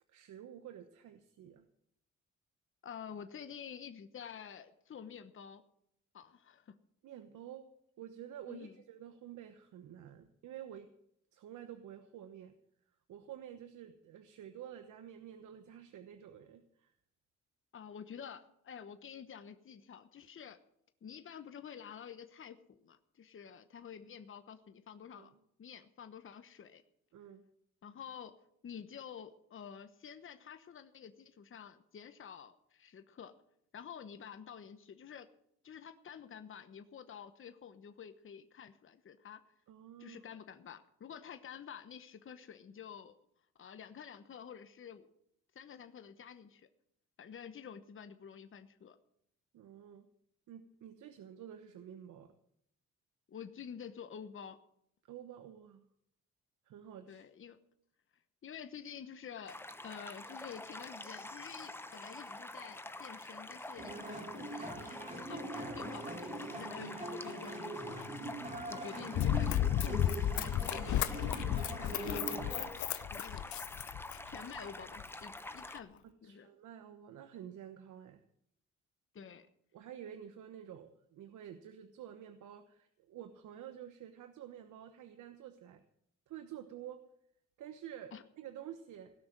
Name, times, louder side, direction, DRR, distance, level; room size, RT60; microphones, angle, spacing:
voice 1, 0.1-1.6 7.0-7.7 8.0-10.9 11.3-12.5 13.1-16.9 25.1-25.3 27.1-27.4 39.7-40.2 49.5-50.1 50.5-52.3 55.1-55.8 56.7-57.2 76.2-78.2 79.7-85.8 86.3-87.0 87.6-89.1, right 10 dB, 80° right, 8 dB, 1.2 m, -50 dB
voice 2, 2.8-5.6 6.1-6.8 8.5-8.7 17.7-20.6 21.0-25.3 25.6-26.8 27.8-28.3 28.6-33.3 33.7-35.3 35.6-39.4 40.0-43.1 43.6-45.1 45.5-46.7 47.2-49.0 53.3-54.6 57.1-57.6 58.4-68.1 68.7-72.7 73.1-73.6 74.2-76.5 79.1-79.5 88.1-88.2, left 7 dB, 45° left, 9 dB, 1.1 m, -49 dB
sound 1, 59.5-75.8, left 1 dB, 10° left, 0.9 m, -47 dB
sound 2, 63.8-72.6, right 2 dB, 25° right, 3.3 m, -43 dB
Run, 69.2-74.4 75.0-75.1, left 11 dB, 70° left, 0.8 m, -33 dB
17.5 x 6.2 x 9.0 m, 0.72 s
cardioid pair, 90°, 30 cm